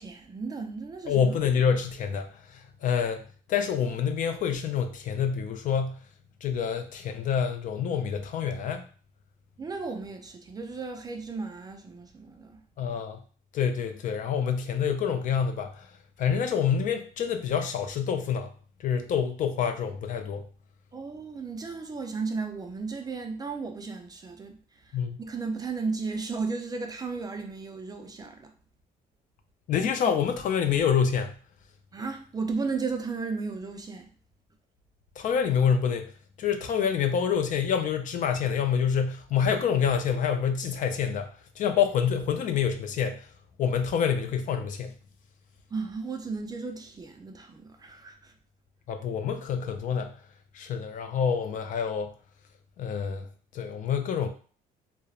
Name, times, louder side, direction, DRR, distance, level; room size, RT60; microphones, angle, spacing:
voice 1, 0.0-1.2 9.6-12.6 20.9-28.5 31.9-34.1 45.7-48.3, right 4 dB, 25° right, 0.4 m, -34 dB
voice 2, 1.1-3.2 3.5-6.0 6.4-8.8 12.8-13.2 13.5-15.9 16.2-18.5 18.8-20.4 24.9-25.2 29.7-31.3 35.2-36.1 36.4-43.3 43.6-44.9 48.9-50.1 50.5-52.1 52.8-53.3 53.5-54.3, left 7 dB, 50° left, 0.4 m, -27 dB
2.9 x 2.0 x 2.3 m
cardioid pair, 110°, 17 cm